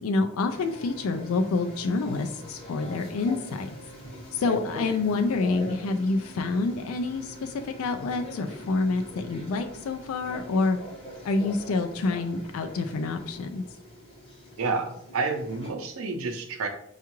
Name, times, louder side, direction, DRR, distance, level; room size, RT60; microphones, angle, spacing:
voice 1, 0.0-3.7 4.3-10.8 11.2-13.6, left 3 dB, 90° left, 6 dB, 0.4 m, -27 dB
sound 1, 0.5-15.7, left 1 dB, 25° left, 0.9 m, -43 dB
voice 2, 14.6-16.7, right 4 dB, 90° right, 5 dB, 0.6 m, -29 dB
4.5 x 2.4 x 2.9 m, 0.72 s
head